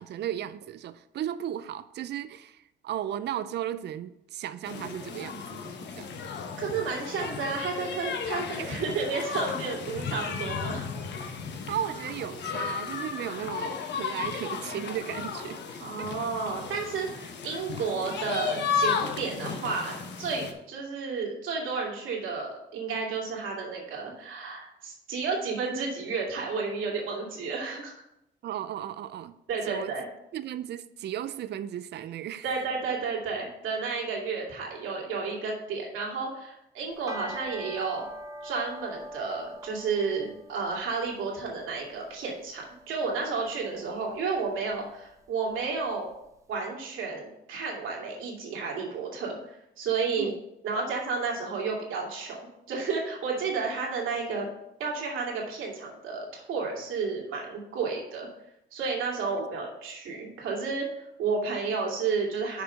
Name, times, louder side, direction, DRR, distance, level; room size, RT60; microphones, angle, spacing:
voice 1, 0.0-5.7 6.0-6.1 8.6-8.8 11.7-16.1 28.4-29.4 29.7-29.9 30.3-32.5 50.2-50.3 59.4-59.5, right 11 dB, 60° right, 13 dB, 0.5 m, -35 dB
sound 1, 4.6-20.5, left 6 dB, 60° left, 1.1 m, -34 dB
voice 2, 6.6-10.9 15.8-27.9 29.5-30.0 32.4-38.0 38.4-46.1 46.5-50.3 50.6-54.5 54.8-58.3 58.7-62.6, right 4 dB, 85° right, -2 dB, 2.5 m, -32 dB
sound 2, 36.9-46.3, equal, 15° right, 0.9 m, -46 dB
6.5 x 4.9 x 6.7 m, 0.84 s
cardioid pair, 90°, 20 cm